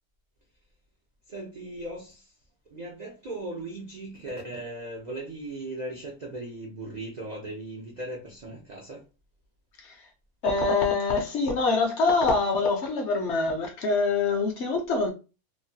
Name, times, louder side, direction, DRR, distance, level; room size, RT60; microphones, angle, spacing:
voice 1, 1.3-2.3 2.7-9.0, right 1 dB, 75° right, 0.4 m, -38 dB
voice 2, 10.4-15.1, left 3 dB, 65° left, 0.8 m, -25 dB
3.1 x 2.2 x 2.6 m
omnidirectional pair, 1.5 m